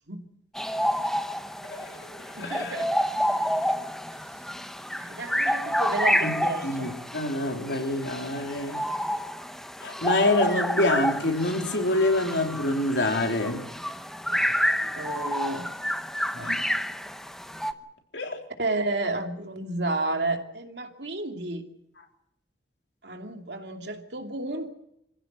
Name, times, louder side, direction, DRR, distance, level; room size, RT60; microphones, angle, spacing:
sound 1, 0.5-17.7, equal, 5° left, 0.9 m, -29 dB
voice 1, 1.6-2.8 6.2-6.3 6.6-8.8 9.8-13.7 16.3-16.7 18.1-18.4, left 2 dB, 85° left, 3.8 m, -26 dB
voice 2, 2.4-3.0 5.0-6.9 14.3-14.6 15.0-15.7 16.4-16.6 18.6-21.7 23.0-24.7, right 2 dB, 75° right, 2.6 m, -32 dB
25.5 x 15.5 x 8.1 m
head